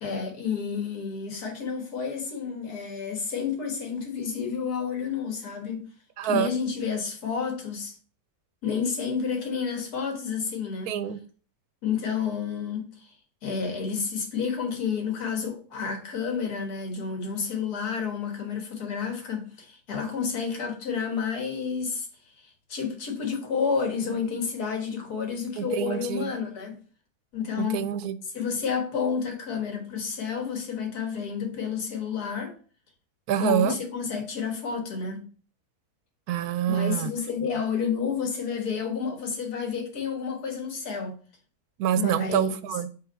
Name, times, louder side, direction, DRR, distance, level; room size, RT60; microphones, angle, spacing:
voice 1, 0.0-5.8 6.2-7.9 8.6-10.9 11.8-13.1 13.4-22.1 22.7-26.8 27.3-27.8 28.3-32.5 33.4-35.3 36.7-41.2 41.9-42.6, left 6 dB, 80° left, 2.0 m, -30 dB
voice 2, 6.2-6.5 10.9-11.2 25.6-26.3 27.6-28.2 33.3-33.8 36.3-37.1 41.8-42.9, right 10 dB, 80° right, 1.1 m, -26 dB
5.8 x 3.5 x 5.5 m
omnidirectional pair, 1.6 m